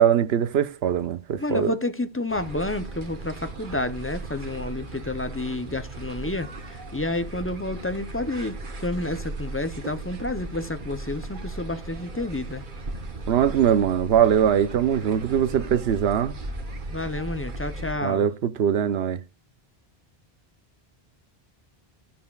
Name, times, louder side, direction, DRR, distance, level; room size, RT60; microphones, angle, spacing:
voice 1, 0.0-1.7 13.3-16.3 18.0-19.2, right 9 dB, 80° right, 0.9 m, -21 dB
voice 2, 1.4-12.6 16.9-18.3, left 2 dB, 15° left, 0.5 m, -30 dB
sound 1, 2.3-17.9, right 2 dB, 55° right, 1.3 m, -37 dB
14.0 x 7.4 x 2.3 m
omnidirectional pair, 1.0 m